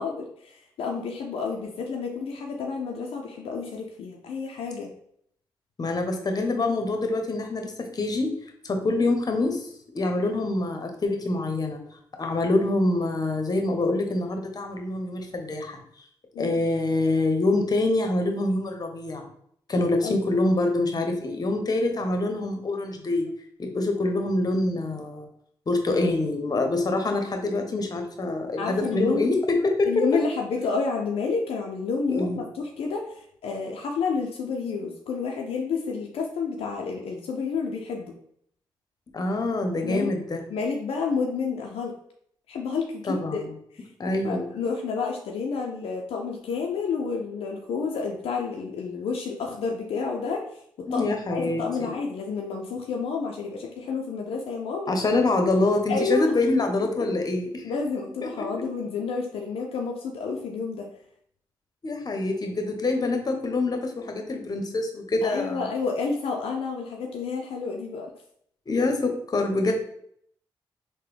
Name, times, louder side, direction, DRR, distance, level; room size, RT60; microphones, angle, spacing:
voice 1, 0.0-4.9 16.3-16.5 20.0-20.3 28.6-29.2 29.9-38.1 39.8-40.1 40.5-41.9 42.5-43.4 43.7-43.9 44.2-50.6 50.9-54.9 55.9-56.3 57.6-60.9 65.2-68.1, left 4 dB, 75° left, 1 dB, 0.4 m, -30 dB
voice 2, 5.8-8.3 8.6-9.7 9.9-11.8 12.2-15.8 16.4-19.2 19.7-23.3 23.6-25.3 25.7-29.9 32.1-32.4 39.1-40.4 43.0-43.4 44.0-44.5 50.9-51.9 54.9-57.7 58.4-58.5 61.8-65.7 68.7-69.7, left 2 dB, 40° left, 4 dB, 0.7 m, -25 dB
3.7 x 2.1 x 3.2 m, 0.68 s
supercardioid pair, 50°, 10 cm